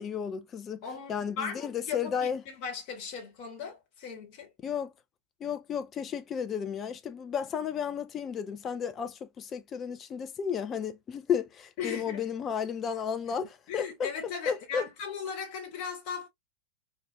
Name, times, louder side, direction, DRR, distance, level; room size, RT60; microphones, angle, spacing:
voice 1, 0.0-0.8 1.1-2.4 4.6-4.9 5.4-14.1 14.5-14.8, left 7 dB, 25° left, 0.3 m, -33 dB
voice 2, 0.8-4.5 11.8-12.3 13.3-13.4 13.7-16.3, left 6 dB, 45° left, 1.0 m, -38 dB
2.4 x 2.1 x 2.4 m
figure-of-eight pair, 90°, 0 cm